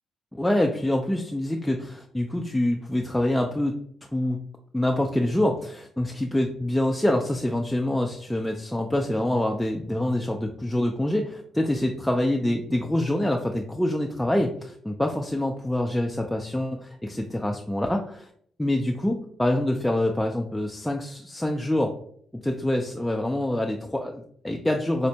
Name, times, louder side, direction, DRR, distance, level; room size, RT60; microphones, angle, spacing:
voice 1, 0.3-3.8 4.1-4.4 4.7-18.3 18.6-21.9 22.4-25.1, left 1 dB, 5° left, 1 dB, 0.3 m, -26 dB
4.3 x 2.1 x 2.7 m, 0.63 s
cardioid pair, 90°, 0 cm